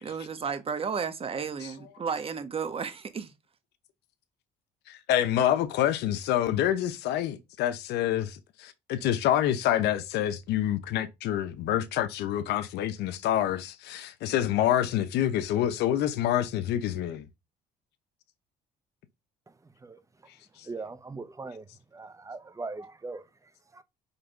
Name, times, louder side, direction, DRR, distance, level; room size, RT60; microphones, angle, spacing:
voice 1, 0.0-3.3, right 6 dB, 35° right, 1.2 m, -33 dB
voice 2, 4.9-17.2, left 11 dB, 80° left, 0.9 m, -27 dB
voice 3, 19.5-20.0 20.6-21.7 21.9-23.8, right 3 dB, 20° right, 0.9 m, -41 dB
5.5 x 3.5 x 5.4 m
cardioid pair, 110°, 17 cm